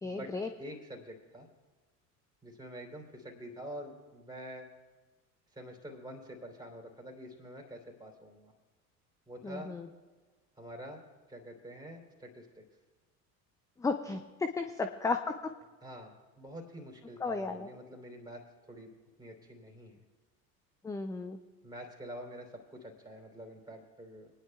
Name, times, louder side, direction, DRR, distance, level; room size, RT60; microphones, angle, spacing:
voice 1, 0.0-0.5 9.4-9.9 13.8-15.5 17.2-17.7 20.8-21.4, left 4 dB, 10° left, 7 dB, 0.4 m, -34 dB
voice 2, 0.6-1.5 2.4-4.7 5.5-8.5 9.3-9.7 10.6-11.0 11.3-12.6 15.8-18.9 19.2-20.0 21.6-24.3, equal, 10° right, 0 dB, 3.3 m, -47 dB
25.5 x 10.0 x 2.3 m, 1.3 s
hypercardioid pair, 75°, 47 cm